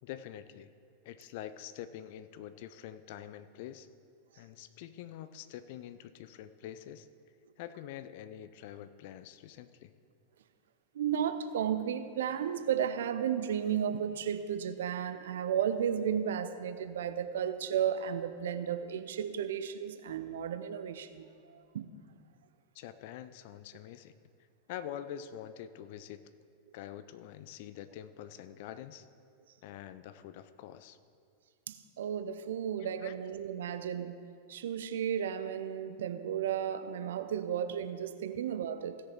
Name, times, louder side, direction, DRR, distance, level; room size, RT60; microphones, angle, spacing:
voice 1, 0.0-0.7 1.0-3.9 4.4-7.1 7.6-9.9 22.7-24.1 24.7-26.2 26.7-29.1 29.6-31.0 33.0-33.1, left 11 dB, 50° left, 13 dB, 0.5 m, -45 dB
voice 2, 11.0-21.3 21.7-21.9 31.7-34.1 34.5-39.0, right 8 dB, 60° right, 11 dB, 0.5 m, -33 dB
16.5 x 6.7 x 4.4 m, 2.3 s
figure-of-eight pair, 90°, 0 cm